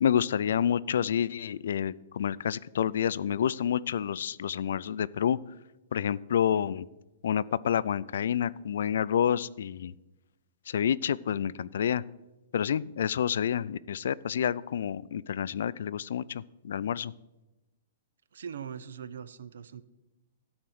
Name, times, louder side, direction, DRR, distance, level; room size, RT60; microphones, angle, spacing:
voice 1, 0.0-5.4 5.9-6.9 7.2-9.9 10.7-12.0 12.5-17.1, left 9 dB, 70° left, 20 dB, 0.3 m, -28 dB
voice 2, 18.3-19.8, right 7 dB, 85° right, 16 dB, 0.6 m, -41 dB
12.5 x 4.4 x 7.8 m, 1.0 s
hypercardioid pair, 170°, 0 cm